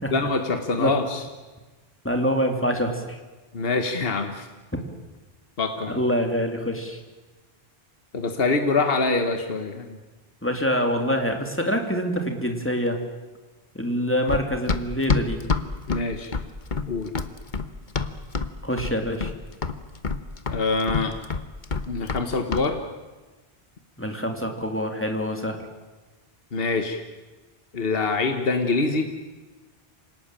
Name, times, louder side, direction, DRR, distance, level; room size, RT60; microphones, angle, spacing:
voice 1, 0.1-1.2 3.5-4.5 5.6-6.0 8.1-10.0 15.9-16.3 16.9-17.1 20.5-21.2 21.9-22.8 26.5-27.0 27.7-29.1, left 3 dB, 65° left, 6 dB, 1.6 m, -25 dB
voice 2, 2.0-3.2 5.9-7.0 10.4-13.0 13.7-15.4 18.6-19.3 24.0-25.6, equal, 10° left, 4 dB, 2.8 m, -25 dB
Run, 14.3-18.5 18.8-19.4 19.6-22.2 22.5-22.7, left 4 dB, 50° left, 1.3 m, -27 dB
27.0 x 18.5 x 9.0 m, 1.2 s
omnidirectional pair, 1.0 m